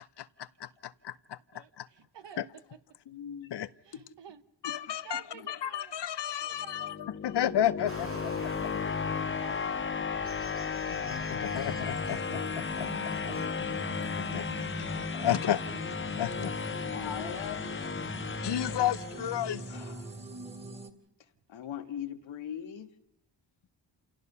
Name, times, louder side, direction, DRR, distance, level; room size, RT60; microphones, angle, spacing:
voice 1, 0.0-1.4 1.8-1.9 2.4-2.5 3.5-3.7 4.6-5.2 5.5-8.3 10.9-12.9 14.2-14.4 15.1-15.6 16.1-16.5 18.4-19.6, left 11 dB, 65° left, 0.8 m, -32 dB
voice 2, 1.5-2.4 3.8-4.4 5.0-7.0 7.6-7.9 9.2-12.1 12.6-12.7 14.6-15.5, right 9 dB, 65° right, 1.3 m, -52 dB
voice 3, 3.1-3.5 3.9-4.0 4.6-4.8 16.9-17.6 19.7-20.1 21.5-22.9, left 9 dB, 85° left, 1.6 m, -40 dB
sound 1, 6.6-19.6, left 6 dB, 25° left, 0.7 m, -35 dB
sound 2, 7.9-13.5, right 2 dB, 30° right, 1.9 m, -48 dB
sound 3, 11.4-20.9, right 1 dB, 15° right, 2.6 m, -41 dB
28.0 x 17.0 x 5.6 m
cardioid pair, 70°, 45 cm